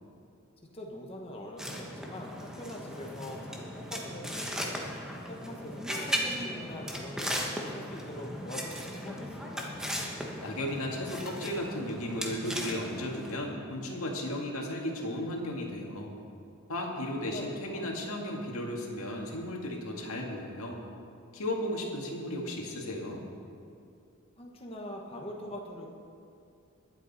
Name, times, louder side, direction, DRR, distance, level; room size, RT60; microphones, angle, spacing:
voice 1, 0.7-4.8 5.3-9.7 16.9-18.0 24.4-25.9, left 1 dB, 25° left, 0 dB, 1.3 m, -43 dB
sound 1, 1.6-13.4, equal, 5° right, 1.1 m, -37 dB
voice 2, 10.4-16.1 16.7-20.8 21.3-23.3, left 1 dB, 80° left, 0 dB, 2.0 m, -35 dB
21.0 x 8.0 x 4.2 m, 2.5 s
head